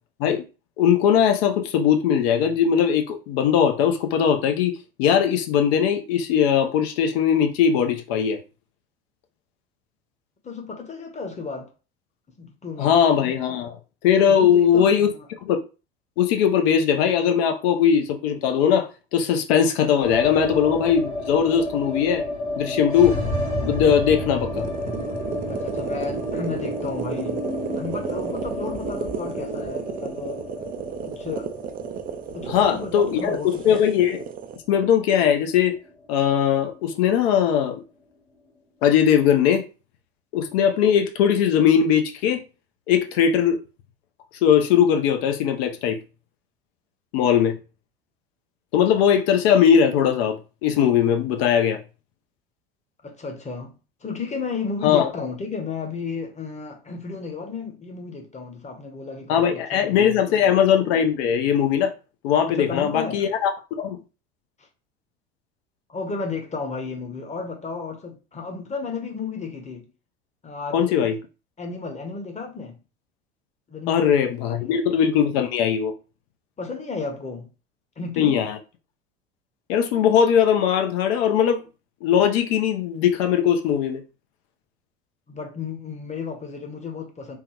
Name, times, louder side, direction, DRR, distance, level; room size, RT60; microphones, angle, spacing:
voice 1, 0.8-8.4 12.8-13.8 14.0-15.1 15.5-15.6 16.2-22.2 22.6-23.2 23.6-24.6 32.5-33.4 33.6-34.3 34.7-35.7 36.1-37.8 38.8-39.6 40.3-42.4 42.9-43.6 44.4-46.0 47.1-47.6 48.7-51.8 54.8-55.1 59.3-61.9 62.2-63.5 63.8-64.0 70.7-71.2 73.9-75.9 78.2-78.5 79.7-81.6 82.0-84.0, left 8 dB, 65° left, 0.8 m, -20 dB
voice 2, 10.4-11.7 12.4-13.0 14.3-15.3 25.5-27.5 27.7-30.5 31.0-31.5 32.3-33.8 53.0-53.7 54.0-60.5 62.4-63.3 64.6-64.7 65.9-69.9 70.4-71.1 71.6-72.8 73.7-74.8 76.6-77.5 78.0-78.4 85.3-87.4, left 4 dB, 20° left, 1.0 m, -33 dB
sound 1, 20.0-36.1 36.4-36.5 36.7-37.5, left 1 dB, 85° left, 1.6 m, -32 dB
sound 2, 24.5-34.6, right 8 dB, 25° right, 0.4 m, -33 dB
3.5 x 2.2 x 3.0 m
hypercardioid pair, 75°, 34 cm